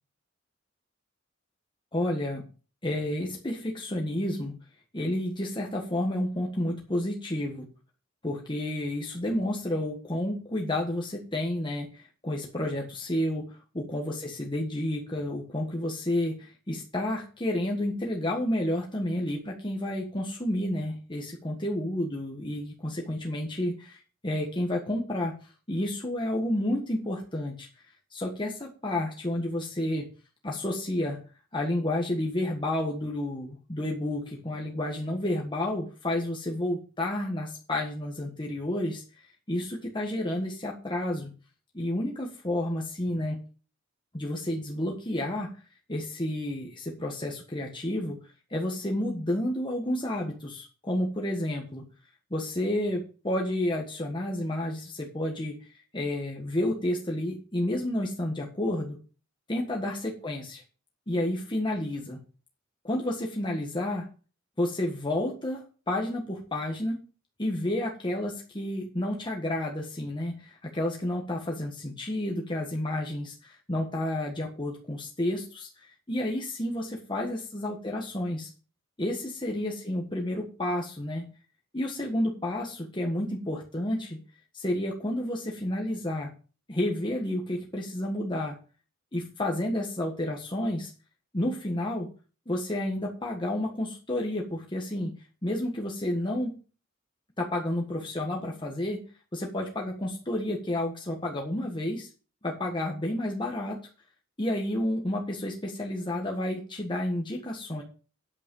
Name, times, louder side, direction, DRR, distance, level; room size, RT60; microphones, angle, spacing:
voice 1, 1.9-2.4 2.8-4.5 4.9-7.6 8.2-25.3 25.7-27.7 28.1-30.0 30.4-31.2 31.5-41.3 41.7-43.4 44.1-45.5 45.9-48.2 48.5-51.8 52.3-59.0 59.5-60.6 61.1-62.2 62.8-64.1 64.6-67.0 67.4-78.5 79.0-81.2 81.7-84.2 84.5-86.3 86.7-88.5 89.1-90.9 91.3-92.1 92.5-95.1 95.4-96.5 97.4-99.0 99.3-102.1 102.4-103.8 104.4-107.8, left 1 dB, 25° left, -1 dB, 1.5 m, -30 dB
8.8 x 8.3 x 5.3 m, 0.37 s
head